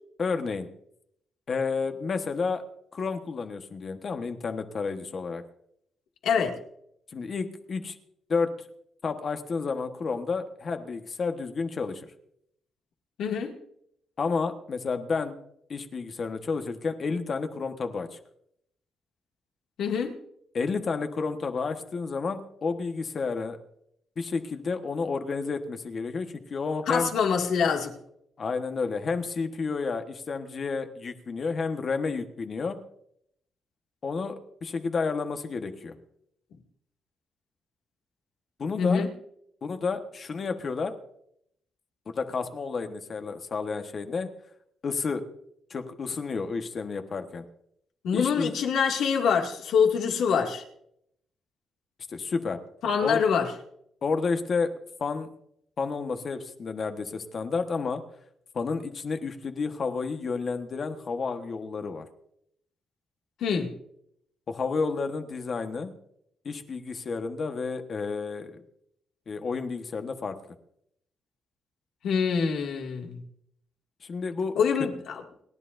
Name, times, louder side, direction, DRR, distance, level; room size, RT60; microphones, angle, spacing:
voice 1, 0.2-0.7 1.5-2.6 2.9-5.4 7.1-7.9 8.3-8.5 9.0-12.1 14.2-15.3 15.7-18.2 20.5-23.6 24.2-27.1 28.4-32.8 34.0-36.0 38.6-39.0 39.6-40.9 42.1-44.3 44.8-45.2 45.7-47.5 48.1-48.5 52.1-52.6 53.0-53.2 54.0-54.7 55.0-55.3 55.8-58.0 58.5-62.1 64.5-65.9 66.4-68.6 69.3-70.3 74.0-74.5, left 4 dB, 40° left, 7 dB, 1.2 m, -30 dB
voice 2, 6.2-6.6 13.2-13.5 19.8-20.1 26.9-27.9 38.8-39.1 48.0-50.6 52.8-53.5 63.4-63.7 72.0-73.2 74.6-75.2, left 6 dB, 80° left, 2 dB, 2.2 m, -25 dB
30.0 x 11.0 x 2.6 m, 0.73 s
cardioid pair, 125°, 0 cm